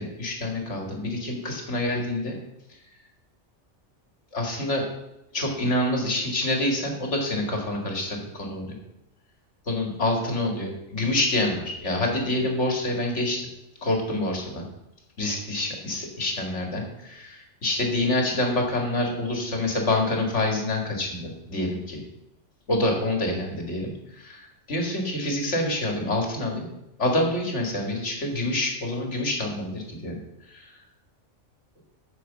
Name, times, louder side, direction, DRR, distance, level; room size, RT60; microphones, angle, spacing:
voice 1, 0.0-2.3 4.3-4.8 5.3-8.8 9.7-13.5 13.8-14.7 15.2-22.0 22.7-26.7 27.0-30.2 30.5-30.7, left 1 dB, 70° left, 2 dB, 2.5 m, -27 dB
9.4 x 6.8 x 7.3 m, 0.88 s
omnidirectional pair, 1.2 m